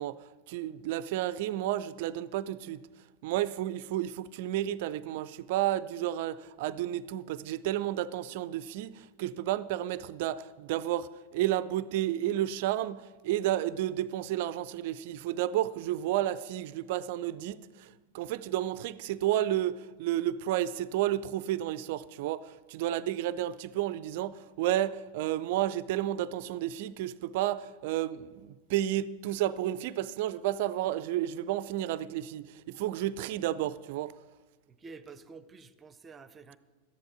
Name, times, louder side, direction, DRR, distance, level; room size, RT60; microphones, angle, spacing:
voice 1, 0.0-2.8 3.2-34.2, right 13 dB, 50° right, 0.5 m, -31 dB
voice 2, 34.7-36.6, right 4 dB, 20° right, 0.7 m, -49 dB
13.5 x 10.5 x 6.1 m
figure-of-eight pair, 90°, 0 cm